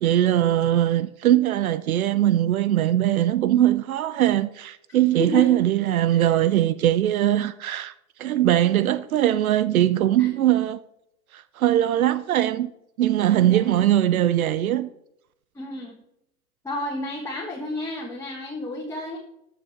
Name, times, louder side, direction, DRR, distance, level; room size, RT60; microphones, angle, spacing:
voice 1, 0.0-7.9 8.2-10.8 11.3-12.7 13.0-14.9, right 12 dB, 75° right, 0.7 m, -21 dB
voice 2, 4.9-5.6 6.1-6.4 10.2-10.3 12.0-12.1 13.4-13.6 15.5-16.0 16.6-19.2, left 1 dB, 5° left, 1.6 m, -32 dB
14.0 x 6.7 x 4.3 m
hypercardioid pair, 115°, 43 cm